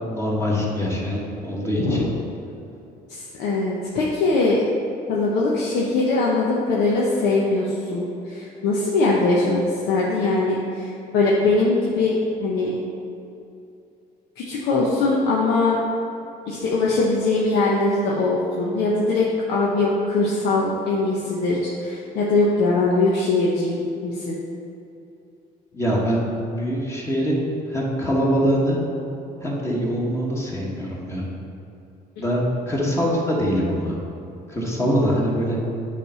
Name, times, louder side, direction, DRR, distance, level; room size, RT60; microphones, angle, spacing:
voice 1, 0.1-2.1 25.7-28.8 29.4-31.3 32.2-34.0 34.5-35.6, equal, 15° left, -4 dB, 1.2 m, -23 dB
voice 2, 1.8-2.1 3.1-4.6 5.1-12.2 12.4-12.8 14.4-15.8 16.5-24.4 32.2-32.3, left 3 dB, 85° left, -4 dB, 0.9 m, -21 dB
8.3 x 3.3 x 5.5 m, 2.7 s
cardioid pair, 110°, 17 cm